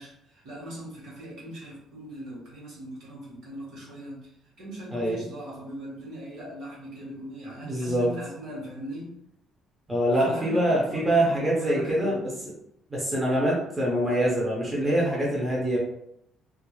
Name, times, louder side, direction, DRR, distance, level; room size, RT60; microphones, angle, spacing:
voice 1, 0.0-4.3 4.6-9.1 10.2-12.2, equal, 60° right, -4 dB, 1.0 m, -40 dB
voice 2, 7.6-8.1 9.9-12.5 12.9-15.8, right 1 dB, 10° right, -5 dB, 0.4 m, -25 dB
2.1 x 2.0 x 3.0 m, 0.77 s
cardioid pair, 180°, 0 cm